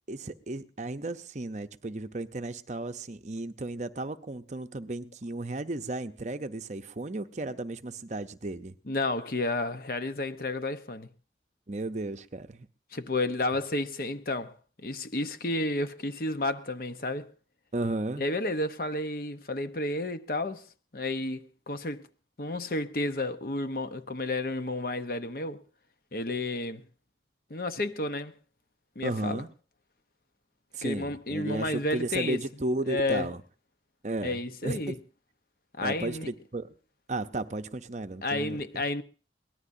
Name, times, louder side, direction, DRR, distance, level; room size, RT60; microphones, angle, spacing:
voice 1, 0.1-8.7 11.7-12.7 17.7-18.2 29.0-29.5 30.7-33.4 34.0-35.0 35.8-36.7 37.1-38.8, right 2 dB, 40° right, 0.7 m, -34 dB
voice 2, 8.9-11.1 12.9-14.5 14.8-17.3 18.2-20.7 20.9-22.1 22.4-25.6 26.1-26.8 27.5-28.3 29.0-29.4 30.8-32.4 32.9-33.3 34.2-35.0 35.8-36.3 38.2-39.0, left 2 dB, 55° left, 0.9 m, -31 dB
23.0 x 18.5 x 2.7 m
head